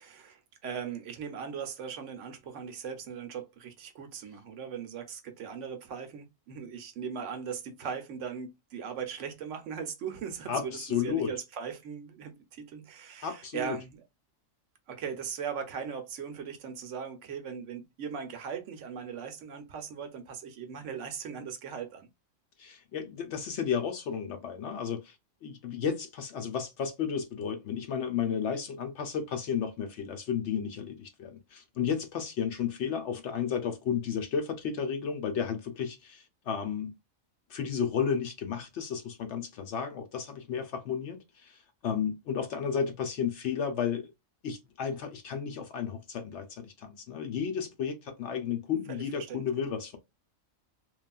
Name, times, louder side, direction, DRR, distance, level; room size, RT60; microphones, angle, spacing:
voice 1, 0.0-14.0 14.9-22.1 48.9-49.4, right 7 dB, 70° right, 0.9 m, -39 dB
voice 2, 10.5-11.3 13.2-13.8 22.6-25.1 25.4-36.9 37.5-41.6 41.8-44.1 44.4-50.0, left 7 dB, 65° left, 0.8 m, -33 dB
3.1 x 2.3 x 2.2 m
omnidirectional pair, 1.4 m